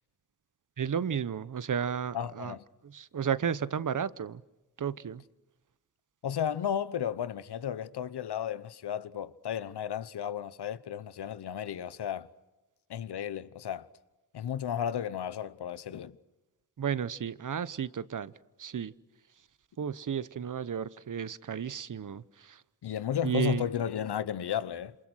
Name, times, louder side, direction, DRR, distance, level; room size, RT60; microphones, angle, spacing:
voice 1, 0.8-2.5 2.8-4.4 4.8-5.2 16.8-18.3 18.6-18.9 19.8-22.6 23.2-23.7, right 8 dB, 50° right, 0.9 m, -33 dB
voice 2, 2.1-2.6 6.2-12.3 12.9-13.9 14.3-16.2 22.8-24.9, left 9 dB, 80° left, 1.0 m, -33 dB
28.0 x 27.5 x 6.3 m
cardioid pair, 85°, 40 cm